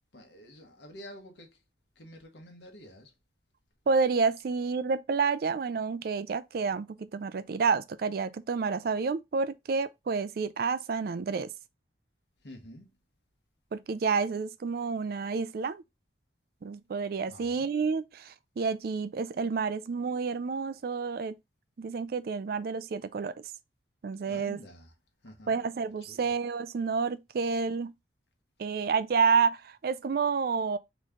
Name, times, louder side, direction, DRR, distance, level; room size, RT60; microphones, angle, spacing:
voice 1, 0.1-1.5 2.0-3.1 12.4-12.9 17.2-17.7 24.2-24.9 25.2-25.6 26.1-26.3, equal, 70° left, 1.3 m, -49 dB
voice 2, 3.9-11.5 13.7-15.8 16.6-21.4 21.8-23.3 24.0-24.6 25.5-27.9 28.6-30.8, right 5 dB, 55° right, 0.4 m, -29 dB
4.2 x 3.1 x 3.7 m
head